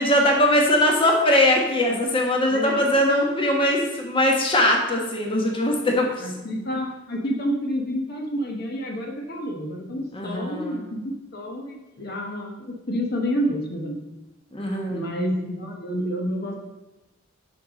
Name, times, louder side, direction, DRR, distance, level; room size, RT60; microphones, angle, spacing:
voice 1, 0.0-6.1 10.1-10.8 14.5-15.0, left 1 dB, 25° left, 0 dB, 1.1 m, -21 dB
voice 2, 2.5-2.8 6.2-14.0 14.9-16.6, equal, 50° left, 2 dB, 1.1 m, -29 dB
7.6 x 5.6 x 5.1 m, 1.0 s
head